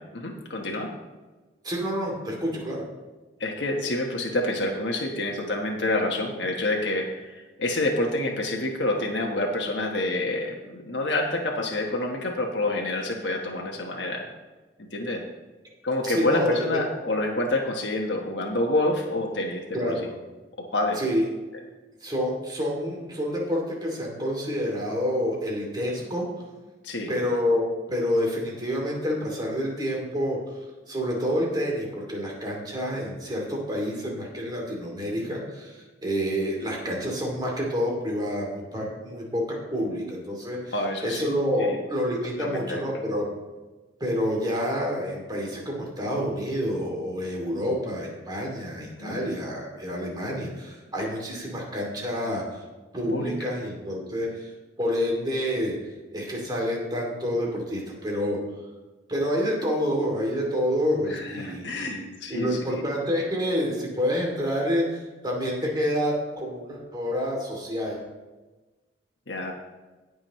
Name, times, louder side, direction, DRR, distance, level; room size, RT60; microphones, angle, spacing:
voice 1, 0.1-0.9 3.4-14.3 14.9-15.2 15.8-19.9 20.7-21.0 26.8-27.1 36.9-37.1 40.7-41.3 41.6-41.8 42.4-42.8 49.0-49.2 53.1-53.3 61.1-62.6 69.3-69.5, left 2 dB, 85° left, 0 dB, 1.3 m, -28 dB
voice 2, 1.6-2.9 16.0-16.8 19.7-20.1 21.0-21.3 22.0-26.3 27.1-30.4 30.9-40.7 41.0-43.3 44.0-52.6 52.9-54.5 54.8-55.8 56.1-58.4 59.1-62.0 62.3-68.1, equal, 25° right, -1 dB, 2.7 m, -28 dB
18.0 x 6.3 x 3.2 m, 1.2 s
head